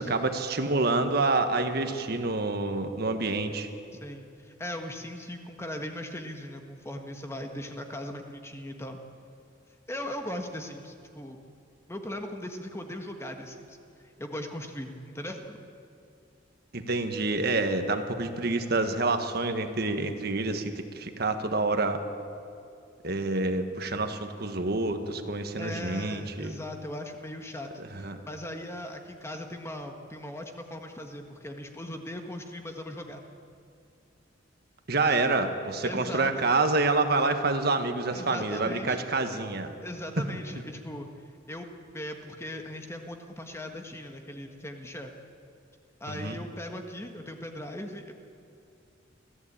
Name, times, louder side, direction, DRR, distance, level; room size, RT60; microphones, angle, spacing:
voice 1, 0.0-3.7 16.7-22.0 23.0-26.5 27.8-28.2 34.9-39.7 40.2-40.3 46.1-46.4, right 3 dB, 55° right, 7 dB, 1.6 m, -27 dB
voice 2, 4.0-9.0 9.9-11.4 11.9-13.8 14.2-15.6 25.6-27.7 28.0-33.2 35.0-35.4 35.8-36.3 38.1-39.0 39.8-41.1 41.5-41.7 41.9-45.1 46.0-48.1, left 1 dB, 15° left, 4 dB, 1.6 m, -39 dB
25.0 x 15.5 x 8.8 m, 2.5 s
head